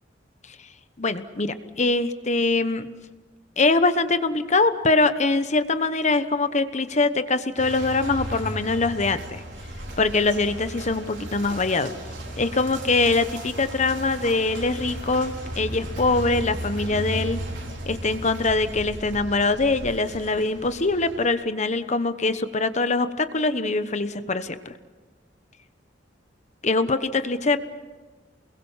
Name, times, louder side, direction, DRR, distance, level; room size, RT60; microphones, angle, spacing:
voice 1, 1.0-2.9 3.6-9.4 10.0-11.9 12.4-17.4 17.9-24.7 26.6-27.6, left 3 dB, 40° left, 11 dB, 1.1 m, -23 dB
sound 1, 7.6-21.3, right 1 dB, 80° right, 5.0 m, -35 dB
29.0 x 22.0 x 5.7 m, 1.3 s
head